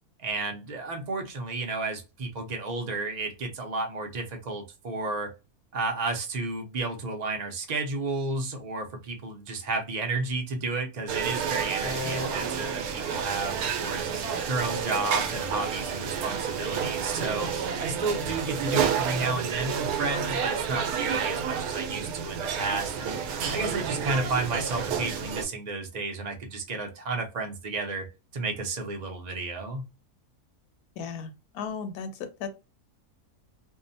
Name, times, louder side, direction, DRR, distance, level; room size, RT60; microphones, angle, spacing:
voice 1, 0.2-5.3 5.7-13.5 13.8-14.1 14.5-17.5 17.8-23.2 23.5-28.1 28.3-29.9, right 3 dB, 60° right, 0.4 m, -32 dB
sound 1, 11.1-25.4, right 7 dB, 80° right, 1.1 m, -30 dB
sound 2, 11.8-13.7, left 2 dB, 60° left, 0.6 m, -38 dB
voice 2, 31.0-32.5, left 6 dB, 80° left, 1.1 m, -36 dB
2.7 x 2.1 x 2.5 m
omnidirectional pair, 1.6 m